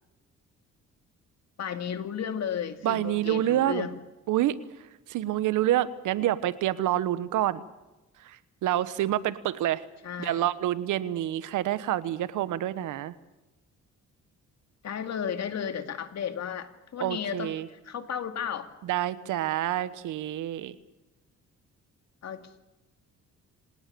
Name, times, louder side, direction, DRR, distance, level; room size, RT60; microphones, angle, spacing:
voice 1, 1.6-4.0 10.0-10.5 14.8-18.7 22.2-22.6, left 8 dB, 60° left, 8 dB, 2.4 m, -34 dB
voice 2, 2.8-3.9 4.3-4.6 5.1-7.6 8.2-9.8 10.2-13.1 17.0-17.7 18.8-20.7, right 13 dB, 85° right, 15 dB, 1.3 m, -27 dB
26.5 x 18.5 x 7.0 m, 1.0 s
cardioid pair, 90°, 30 cm